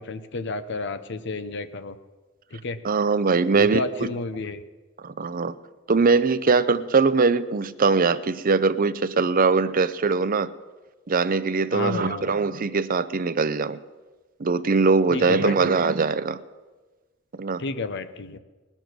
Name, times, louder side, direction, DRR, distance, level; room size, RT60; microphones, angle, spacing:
voice 1, 0.1-1.9 2.5-2.8 3.5-4.6 11.7-12.3 15.1-15.6 17.6-18.4, left 3 dB, 60° left, 0.8 m, -31 dB
voice 2, 2.8-4.1 5.0-5.5 5.9-10.5 11.1-13.8 14.4-16.4 17.4-17.6, right 4 dB, 45° right, 0.6 m, -21 dB
21.0 x 7.2 x 6.1 m
head